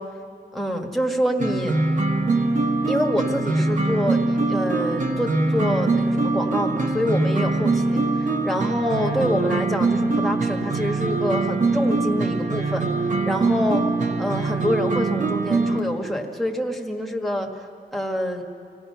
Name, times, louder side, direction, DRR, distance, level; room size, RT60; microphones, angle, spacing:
voice 1, 0.5-1.7 2.9-12.9 13.2-13.8 14.2-17.5 17.9-18.4, equal, ahead, 1 dB, 1.6 m, -26 dB
sound 1, 1.4-15.8, right 3 dB, 45° right, 1.3 m, -23 dB
26.0 x 18.0 x 5.7 m, 2.3 s
wide cardioid pair, 130°, 17 cm